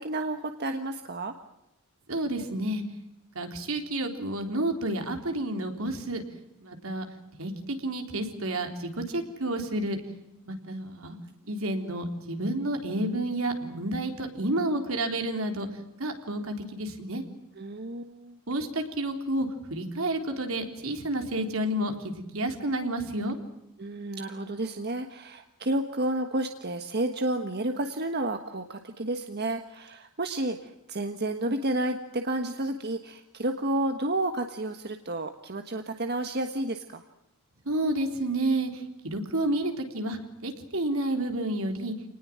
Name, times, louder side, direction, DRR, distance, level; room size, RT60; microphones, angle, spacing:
voice 1, 0.0-1.3 17.6-18.4 23.8-37.0, right 1 dB, 50° right, 6 dB, 1.5 m, -31 dB
voice 2, 2.1-2.8 3.4-6.2 6.6-7.0 7.4-10.0 10.5-11.2 11.5-15.7 16.0-17.2 18.5-23.4 37.7-41.9, right 1 dB, 75° right, 5 dB, 3.8 m, -30 dB
28.0 x 19.5 x 7.6 m, 0.86 s
head